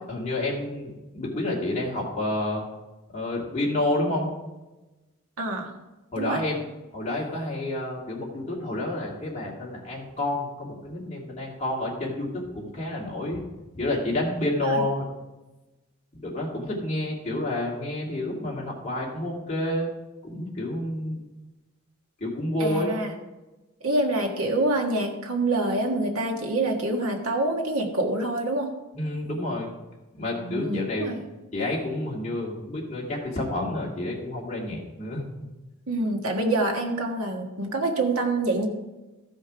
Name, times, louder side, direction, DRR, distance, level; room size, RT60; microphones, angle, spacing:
voice 1, 0.1-2.6 3.1-4.3 6.1-6.6 6.9-13.4 13.7-15.0 16.2-19.9 20.2-21.2 22.2-22.9 28.9-29.7 30.1-31.1 31.5-35.2, left 1 dB, 30° left, -4 dB, 2.3 m, -29 dB
voice 2, 5.4-5.7 6.2-6.4 14.6-14.8 22.6-23.1 23.8-28.7 30.4-31.2 35.9-38.7, right 2 dB, 85° right, 2 dB, 1.6 m, -26 dB
14.5 x 5.3 x 4.9 m, 1.1 s
head